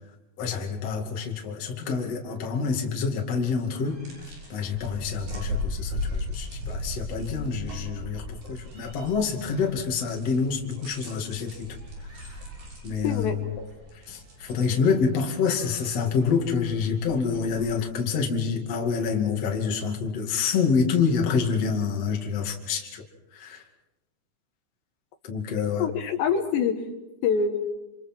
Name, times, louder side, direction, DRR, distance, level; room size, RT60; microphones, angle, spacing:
voice 1, 0.4-4.0 4.5-11.7 12.8-13.4 14.1-23.0 23.4-23.6 25.2-25.9, left 5 dB, 40° left, 1 dB, 3.0 m, -27 dB
sound 1, 3.7-17.9, left 1 dB, 55° right, 7.9 m, -37 dB
voice 2, 13.0-13.7 25.8-26.8 27.2-27.7, left 6 dB, 75° left, 5 dB, 3.5 m, -25 dB
28.0 x 28.0 x 4.6 m, 1.0 s
omnidirectional pair, 5.1 m